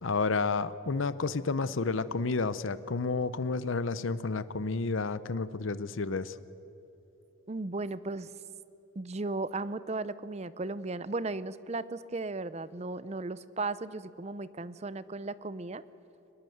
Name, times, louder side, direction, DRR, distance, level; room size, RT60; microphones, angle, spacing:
voice 1, 0.0-6.4, left 4 dB, 75° left, 15 dB, 0.7 m, -31 dB
voice 2, 7.5-8.3 9.0-15.8, right 3 dB, 30° right, 16 dB, 0.6 m, -36 dB
23.5 x 20.5 x 7.9 m, 2.9 s
head